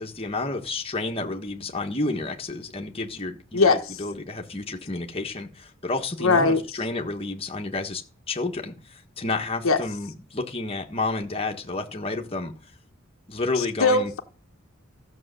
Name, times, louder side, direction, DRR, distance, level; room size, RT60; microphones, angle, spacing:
voice 1, 0.0-12.5 13.3-14.1, left 2 dB, 25° left, 1.5 m, -30 dB
voice 2, 6.2-6.6 9.6-9.8 13.6-14.2, left 3 dB, 70° left, 1.2 m, -20 dB
14.0 x 6.8 x 6.8 m
head